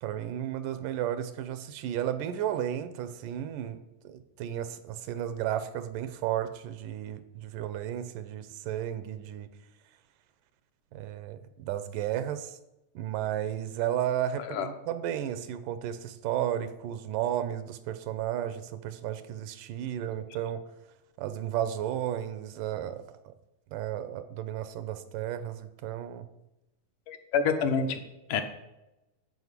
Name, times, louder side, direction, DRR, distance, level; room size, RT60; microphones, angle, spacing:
voice 1, 0.0-9.5 10.9-12.6 13.0-20.6 21.2-23.3 23.7-26.3, right 11 dB, 85° right, 11 dB, 2.4 m, -33 dB
voice 2, 27.1-28.0 28.3-28.4, left 6 dB, 75° left, 6 dB, 2.6 m, -27 dB
13.0 x 5.0 x 8.2 m, 0.95 s
omnidirectional pair, 3.7 m